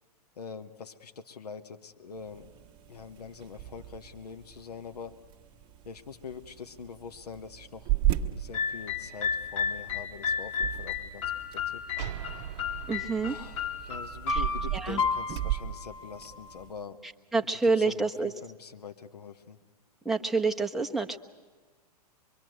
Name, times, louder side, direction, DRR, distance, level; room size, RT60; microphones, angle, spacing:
voice 1, 0.4-2.5 2.9-5.2 5.8-11.8 13.2-17.0 17.6-19.6, left 5 dB, 75° left, 8 dB, 1.5 m, -44 dB
sound 1, 2.1-16.9, right 13 dB, 25° right, 1.3 m, -37 dB
sound 2, 8.5-16.5, left 6 dB, 50° left, 2.9 m, -33 dB
sound 3, 12.0-15.5, right 11 dB, 50° right, 0.9 m, -43 dB
voice 2, 12.9-13.4 14.3-14.4 14.7-15.0 17.3-18.3 20.0-21.2, right 4 dB, ahead, 1 dB, 1.1 m, -27 dB
24.5 x 23.5 x 8.0 m, 1.4 s
figure-of-eight pair, 110°, 21 cm